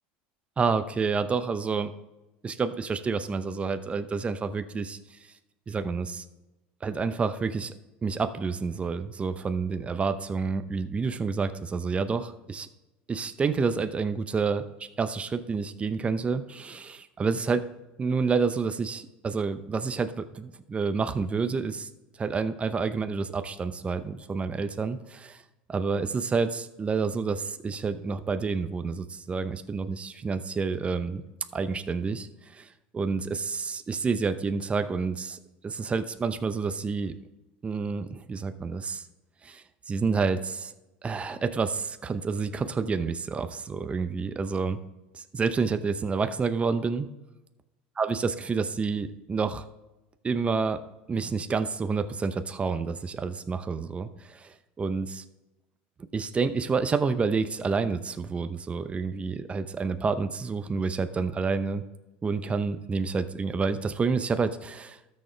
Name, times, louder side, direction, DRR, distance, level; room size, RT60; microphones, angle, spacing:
voice 1, 0.6-1.9 2.4-5.0 5.7-6.2 6.8-7.7 8.0-12.7 13.1-17.6 18.0-21.9 22.2-25.4 25.7-31.2 31.5-32.7 32.9-37.1 37.6-39.0 39.4-40.7 41.0-44.8 45.1-47.1 48.0-49.6 50.2-50.8 51.1-55.2 56.1-61.8 62.2-65.0, right 4 dB, 25° right, 10 dB, 0.7 m, -29 dB
13.5 x 6.5 x 3.3 m, 1.0 s
supercardioid pair, 95°, 5 cm